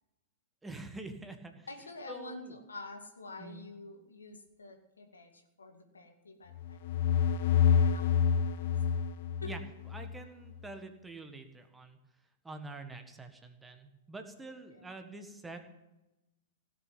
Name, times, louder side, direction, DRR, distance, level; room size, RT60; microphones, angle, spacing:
voice 1, 0.6-1.7 2.1-2.5 3.4-3.7 9.4-9.6 9.9-12.0 12.4-15.6, right 2 dB, 10° right, 6 dB, 1.6 m, -46 dB
voice 2, 1.7-6.8 7.6-8.9 9.4-9.5 14.7-14.9, left 3 dB, 80° left, 4 dB, 2.1 m, -48 dB
sound 1, 6.6-10.2, left 8 dB, 55° left, 0.7 m, -27 dB
17.0 x 6.8 x 9.0 m, 0.99 s
figure-of-eight pair, 100°, 0 cm